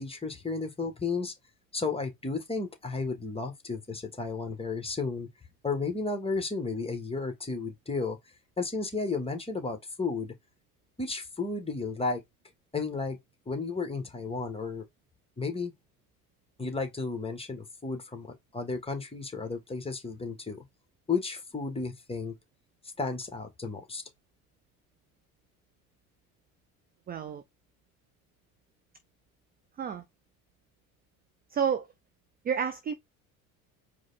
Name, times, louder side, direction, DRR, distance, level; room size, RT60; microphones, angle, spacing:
voice 1, 0.0-1.3 1.7-5.3 5.6-8.2 8.6-10.3 11.0-12.2 12.7-13.2 13.5-14.9 15.4-15.7 16.6-20.6 21.1-22.3 23.0-24.0, left 4 dB, 15° left, 1.5 m, -33 dB
voice 2, 27.1-27.4 29.8-30.0 31.5-31.9 32.4-32.9, right 7 dB, 20° right, 0.4 m, -30 dB
4.8 x 2.4 x 4.1 m
hypercardioid pair, 70°, 44 cm